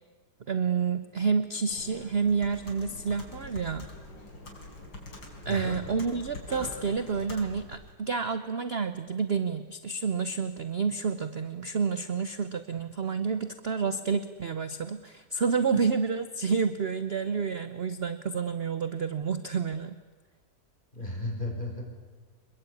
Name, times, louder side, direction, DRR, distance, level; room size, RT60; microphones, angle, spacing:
voice 1, 0.5-3.9 5.4-20.0, right 5 dB, 45° right, 11 dB, 0.8 m, -29 dB
Computer keyboard, 1.7-7.9, left 2 dB, 90° left, 5.4 m, -44 dB
voice 2, 5.4-5.8 20.9-21.8, left 2 dB, 25° left, 0 dB, 6.6 m, -34 dB
26.5 x 22.0 x 8.6 m, 1.4 s
omnidirectional pair, 2.0 m